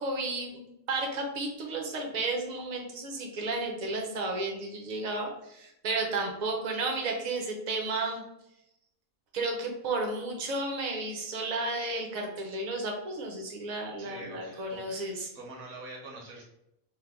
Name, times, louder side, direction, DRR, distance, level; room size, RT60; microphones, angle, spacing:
voice 1, 0.0-8.2 9.3-15.3, right 2 dB, 50° right, 1 dB, 0.5 m, -33 dB
voice 2, 14.0-16.4, right 2 dB, 80° right, -2 dB, 1.3 m, -45 dB
3.3 x 2.1 x 3.5 m, 0.81 s
omnidirectional pair, 1.5 m